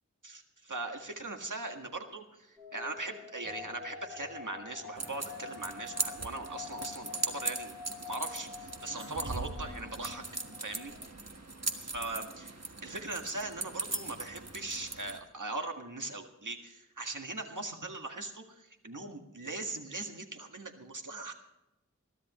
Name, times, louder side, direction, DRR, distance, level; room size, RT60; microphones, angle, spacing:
voice 1, 0.7-10.2 10.6-10.9 11.8-21.3, right 2 dB, 90° right, 4 dB, 1.8 m, -40 dB
sound 1, 2.6-11.0, left 5 dB, ahead, 5.8 m, -47 dB
sound 2, 5.0-15.2, right 3 dB, 60° right, 1.5 m, -39 dB
21.5 x 13.5 x 3.1 m, 0.92 s
wide cardioid pair, 40°, 30 cm